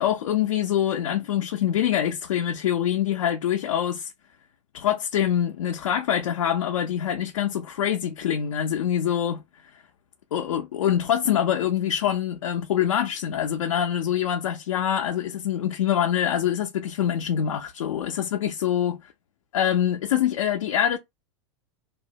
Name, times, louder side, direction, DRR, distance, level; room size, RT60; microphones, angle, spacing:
voice 1, 0.0-4.1 4.7-9.4 10.3-19.0 19.5-21.0, left 10 dB, 90° left, 0.4 m, -25 dB
2.4 x 2.1 x 2.7 m
hypercardioid pair, 115°, 16 cm